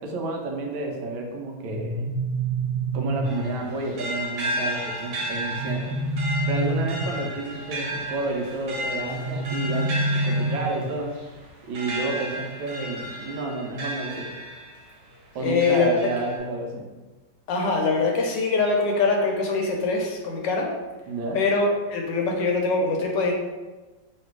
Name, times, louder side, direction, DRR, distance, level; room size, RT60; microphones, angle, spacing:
voice 1, 0.0-2.1 2.9-6.0 6.4-9.9 10.1-11.1 11.7-14.4 15.3-16.9 21.1-21.4, right 2 dB, 80° right, 1 dB, 1.5 m, -30 dB
sound 1, 1.6-3.6 5.3-7.3 9.0-11.0, right 2 dB, 40° right, 1.1 m, -27 dB
sound 2, 3.2-14.9 15.4-16.4, equal, 65° right, 1.5 m, -33 dB
voice 2, 15.4-15.9 17.5-20.7 21.3-23.3, left 4 dB, 70° left, 1 dB, 1.1 m, -23 dB
3.2 x 2.9 x 4.5 m, 1.2 s
omnidirectional pair, 2.2 m